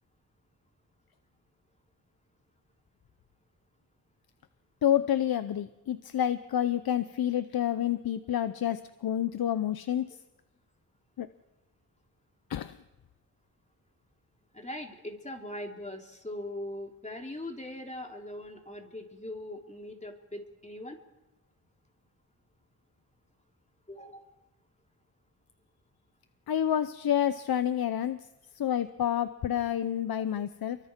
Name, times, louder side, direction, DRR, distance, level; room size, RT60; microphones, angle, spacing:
voice 1, 4.8-10.1 11.2-11.3 12.5-12.8 26.5-28.2 28.6-30.8, left 10 dB, 75° left, 12 dB, 0.8 m, -28 dB
voice 2, 14.5-21.0 23.9-24.3 30.3-30.4, left 1 dB, 20° left, 2 dB, 3.2 m, -41 dB
29.5 x 23.5 x 4.6 m, 1.0 s
cardioid pair, 70°, 36 cm